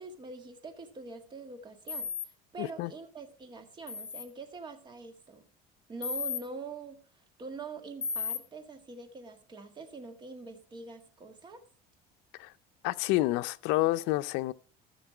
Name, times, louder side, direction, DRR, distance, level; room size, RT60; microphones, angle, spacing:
voice 1, 0.0-5.4 5.9-7.0 7.4-11.6, right 3 dB, 25° right, 1.8 m, -44 dB
sound 1, 1.9-2.3 3.9-4.2 6.0-6.4 8.0-8.4, left 5 dB, 15° left, 1.3 m, -34 dB
voice 2, 2.6-2.9 12.4-12.5 12.8-14.5, left 18 dB, 75° left, 0.6 m, -29 dB
14.0 x 6.7 x 4.5 m
cardioid pair, 145°, 18 cm